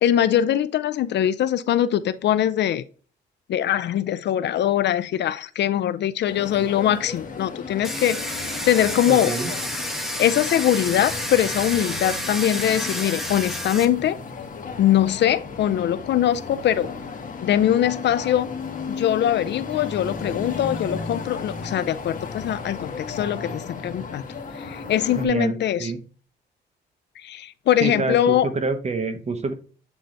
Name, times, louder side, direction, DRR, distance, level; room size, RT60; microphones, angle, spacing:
voice 1, 0.0-2.8 3.5-9.3 10.2-14.2 14.8-16.9 17.4-18.5 18.9-24.2 24.6-25.9 27.2-28.5, left 11 dB, 60° left, 0.5 m, -22 dB
sound 1, 6.3-25.3, left 4 dB, 45° left, 1.4 m, -35 dB
Domestic sounds home sounds, 7.8-13.9, equal, ahead, 1.1 m, -30 dB
voice 2, 9.0-9.5 25.1-26.0 27.8-29.5, right 3 dB, 35° right, 1.2 m, -27 dB
8.1 x 3.8 x 3.4 m
cardioid pair, 90°, 20 cm